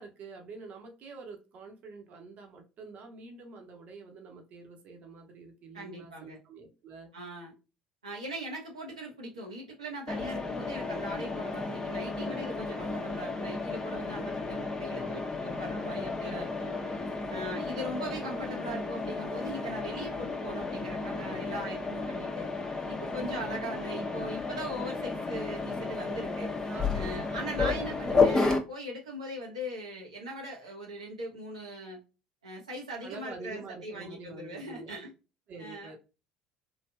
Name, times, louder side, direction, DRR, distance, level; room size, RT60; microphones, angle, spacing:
voice 1, 0.0-7.1 16.2-17.7 26.7-27.8 33.0-34.9 35.5-36.0, right 3 dB, 50° right, 3 dB, 0.9 m, -47 dB
voice 2, 5.7-6.4 7.1-7.5 8.0-16.7 17.3-22.5 22.9-26.5 26.9-32.0 32.4-35.1 35.6-36.0, right 1 dB, 85° right, -2 dB, 0.7 m, -40 dB
Mechanisms, 10.1-28.6, left 3 dB, 20° left, 0.7 m, -32 dB
3.2 x 2.4 x 2.2 m, 0.31 s
figure-of-eight pair, 60°, 3 cm